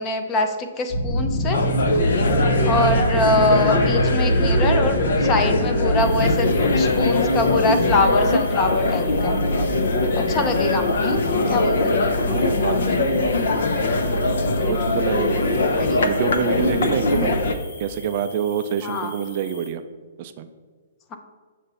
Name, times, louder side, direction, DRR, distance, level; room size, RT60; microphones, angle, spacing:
voice 1, 0.0-1.6 2.7-6.5 6.7-9.3 10.3-11.2 11.5-12.0 15.7-16.1 18.8-19.1 21.1-21.2, left 2 dB, 20° left, 6 dB, 0.6 m, -24 dB
sound 1, 0.9-9.0, right 2 dB, 40° left, 1.5 m, -25 dB
sound 2, 1.5-17.5, left 2 dB, 70° left, 0.6 m, -21 dB
sound 3, 6.0-19.7, left 2 dB, 85° left, 1.8 m, -43 dB
voice 2, 12.3-13.5 14.7-15.6 16.0-17.3 17.8-19.8 20.2-20.5, right 9 dB, 40° right, 9 dB, 0.4 m, -27 dB
6.7 x 3.0 x 5.4 m, 1.5 s
hypercardioid pair, 155°, 0 cm